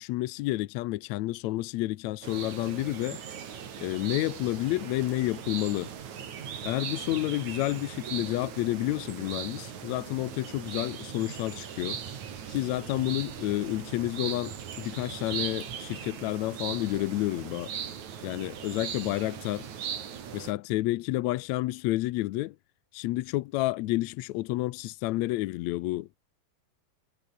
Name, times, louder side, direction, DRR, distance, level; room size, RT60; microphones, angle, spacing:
voice 1, 0.0-3.2 3.8-5.9 6.6-12.0 12.5-17.7 18.2-19.7 20.3-22.6 22.9-26.2, left 17 dB, 75° left, 1.9 m, -30 dB
sound 1, 2.2-20.5, right 8 dB, 75° right, 3.8 m, -39 dB
omnidirectional pair, 3.4 m